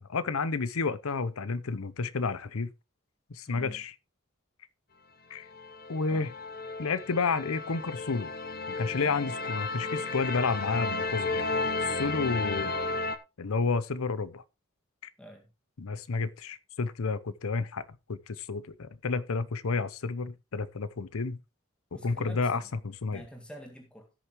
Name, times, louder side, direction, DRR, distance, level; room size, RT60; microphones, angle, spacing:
voice 1, 0.0-2.7 3.3-3.9 5.3-5.5 5.9-6.3 6.8-8.3 8.7-11.5 11.8-12.7 13.4-14.4 15.8-21.4 22.0-22.6 23.0-23.2, left 4 dB, 85° left, 0.7 m, -31 dB
voice 2, 3.5-3.8 6.1-6.3 15.2-15.5 21.9-22.7 23.1-24.1, equal, 5° left, 1.9 m, -47 dB
sound 1, 5.5-13.2, left 3 dB, 45° left, 0.9 m, -33 dB
17.0 x 6.7 x 3.1 m
head